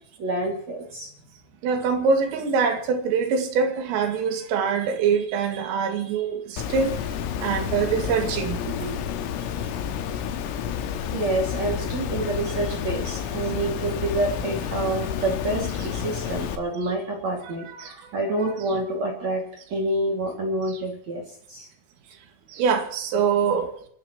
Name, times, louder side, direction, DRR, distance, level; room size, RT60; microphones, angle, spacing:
voice 1, 0.2-1.1 9.1-9.2 11.1-19.4 19.7-21.2 21.5-21.7, right 2 dB, 45° right, 0 dB, 2.9 m, -28 dB
voice 2, 1.6-6.9 7.4-9.0 17.7-18.1 22.5-23.7, right 5 dB, 80° right, 5 dB, 4.7 m, -24 dB
Water, 6.6-16.6, left 8 dB, 90° left, 4.0 m, -30 dB
28.0 x 12.5 x 3.1 m, 0.62 s
omnidirectional pair, 5.9 m